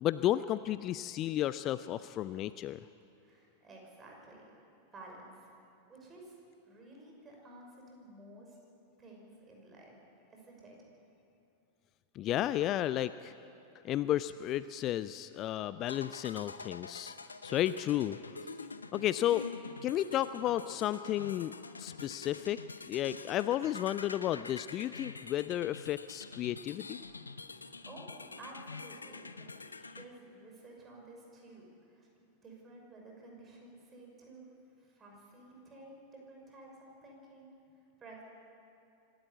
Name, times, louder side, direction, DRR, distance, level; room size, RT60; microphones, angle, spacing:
voice 1, 0.0-2.8 12.1-13.3 13.8-17.1 17.4-18.2 18.9-19.5 19.8-21.5 21.8-22.6 22.9-27.0, left 13 dB, 35° left, 15 dB, 0.4 m, -32 dB
voice 2, 3.2-4.6 4.9-5.5 5.8-6.4 6.6-8.6 9.0-10.0 10.3-10.9 27.5-29.5 29.9-32.1 32.4-34.5 34.8-37.5 38.0-38.2, right 2 dB, 20° right, -1 dB, 5.9 m, -53 dB
sound 1, 15.8-30.0, left 4 dB, 80° left, 0.7 m, -46 dB
25.5 x 13.0 x 8.3 m, 2.7 s
figure-of-eight pair, 90°, 0 cm